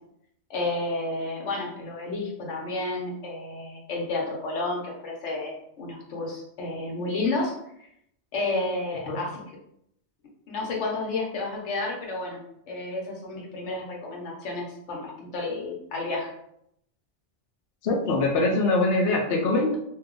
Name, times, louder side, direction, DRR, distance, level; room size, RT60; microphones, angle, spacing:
voice 1, 0.5-7.5 8.3-9.4 10.5-12.4 12.7-16.3, left 2 dB, 85° left, -1 dB, 1.1 m, -31 dB
voice 2, 17.8-19.8, left 2 dB, 65° left, -1 dB, 0.8 m, -23 dB
2.6 x 2.2 x 3.7 m, 0.74 s
omnidirectional pair, 1.2 m